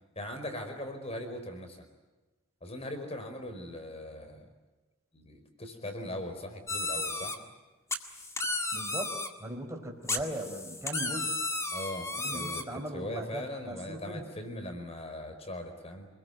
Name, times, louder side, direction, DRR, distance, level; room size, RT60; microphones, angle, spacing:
voice 1, 0.1-1.9 2.6-4.5 5.1-7.3 11.7-16.1, left 1 dB, 30° left, 7 dB, 4.7 m, -40 dB
sound 1, 6.7-7.4 7.9-9.3 10.1-12.6, left 2 dB, 15° left, 2.0 m, -33 dB
voice 2, 8.7-11.3 12.2-14.2, right 1 dB, 15° right, 1 dB, 4.6 m, -39 dB
28.5 x 21.5 x 9.4 m, 1.2 s
head